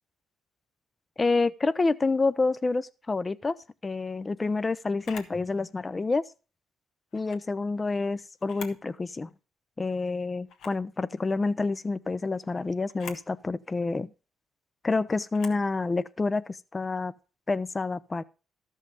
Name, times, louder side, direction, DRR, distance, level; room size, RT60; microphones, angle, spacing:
voice 1, 1.2-3.6 3.8-6.2 7.1-9.3 9.8-14.1 14.8-16.4 16.7-17.1 17.5-18.2, left 3 dB, 25° left, 0.5 m, -28 dB
Camera, 5.0-5.4 7.1-7.4 8.4-8.9 9.3-9.4 10.5-10.8 12.9-13.3 15.3-15.6, left 6 dB, 85° left, 1.6 m, -44 dB
13.0 x 5.6 x 5.0 m
cardioid pair, 90°, 0 cm